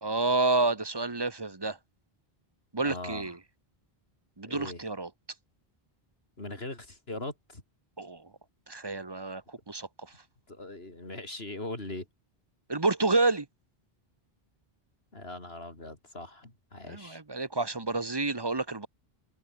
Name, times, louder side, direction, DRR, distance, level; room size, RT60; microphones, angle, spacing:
voice 1, 0.0-1.8 2.7-3.4 4.4-5.1 8.0-8.3 8.7-10.1 12.7-13.5 16.9-18.9, right 3 dB, 25° right, 1.1 m, -29 dB
voice 2, 2.8-3.4 4.4-4.8 6.4-7.6 10.5-12.1 15.1-17.2, left 2 dB, 75° left, 5.0 m, -40 dB
omnidirectional pair, 1.0 m